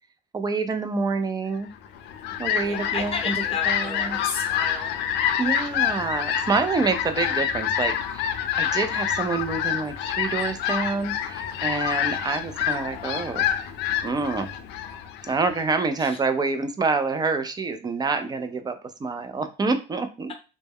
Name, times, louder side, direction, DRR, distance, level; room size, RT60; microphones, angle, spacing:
voice 1, 0.3-1.7 2.4-3.3 3.7-4.2 5.4-13.5 14.0-14.5 15.3-20.3, right 4 dB, 25° right, 8 dB, 0.4 m, -27 dB
Fowl, 1.8-15.8, left 9 dB, 85° left, 0.4 m, -27 dB
voice 2, 2.6-4.9 16.0-16.2, left 5 dB, 35° left, 3 dB, 0.7 m, -32 dB
2.2 x 2.0 x 3.4 m, 0.32 s
cardioid pair, 110°, 17 cm